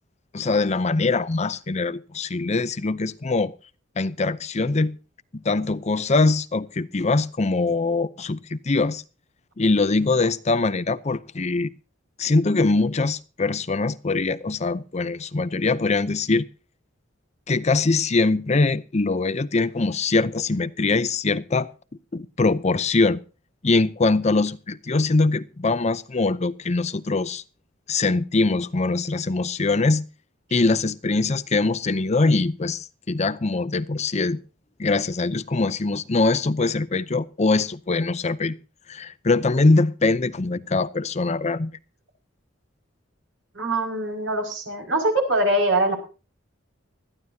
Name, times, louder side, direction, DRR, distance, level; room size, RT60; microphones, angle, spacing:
voice 1, 0.3-3.5 4.0-5.0 5.3-9.0 9.6-11.7 12.2-16.5 17.5-21.7 22.1-23.2 23.6-27.4 27.9-30.1 30.5-34.4 34.8-38.6 38.9-41.7, left 3 dB, 35° left, 0.6 m, -22 dB
voice 2, 43.5-46.0, right 1 dB, 65° right, 5.6 m, -23 dB
20.5 x 14.0 x 2.8 m
head